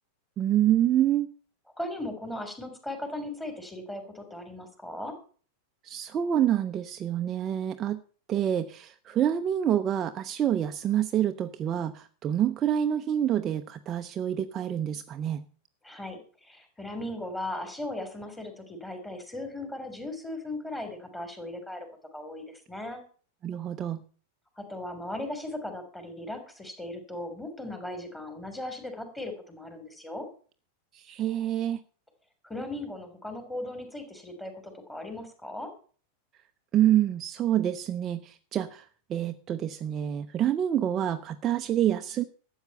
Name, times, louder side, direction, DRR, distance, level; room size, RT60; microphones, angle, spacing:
voice 1, 0.4-1.3 5.8-8.0 8.3-15.4 23.4-24.0 30.9-31.8 36.7-42.2, right 11 dB, 30° right, 8 dB, 0.7 m, -27 dB
voice 2, 1.8-5.2 15.8-21.9 22.1-23.0 24.5-30.2 32.4-35.7, left 1 dB, 10° left, 7 dB, 3.4 m, -37 dB
13.0 x 8.1 x 6.6 m, 0.41 s
figure-of-eight pair, 90°, 0 cm